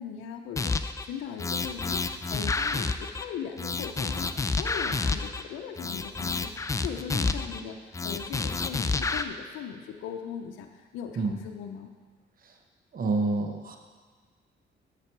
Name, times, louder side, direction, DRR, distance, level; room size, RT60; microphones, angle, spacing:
voice 1, 0.0-2.0 2.3-11.9, left 8 dB, 85° left, 4 dB, 0.6 m, -39 dB
sound 1, 0.6-1.0 1.4-3.2 3.6-5.4 5.8-7.6 7.9-9.2, left 4 dB, 15° left, 0.3 m, -29 dB
voice 2, 12.9-13.8, right 3 dB, 45° right, 4 dB, 0.9 m, -28 dB
7.5 x 6.9 x 4.6 m, 1.5 s
cardioid pair, 90°, 20 cm